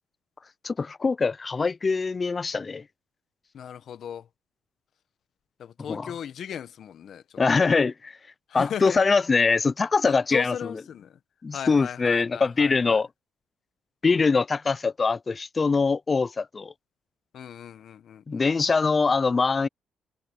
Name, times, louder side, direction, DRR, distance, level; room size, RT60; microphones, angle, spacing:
voice 1, 0.6-2.8 5.9-6.1 7.4-8.2 8.5-10.8 11.4-13.1 14.0-16.7 18.3-19.7, left 4 dB, 30° left, 0.7 m, -23 dB
voice 2, 3.5-4.3 5.6-7.2 8.5-9.0 10.0-11.2 11.5-13.0 17.3-18.5, left 9 dB, 65° left, 1.5 m, -37 dB
cardioid pair, 90°, 0 cm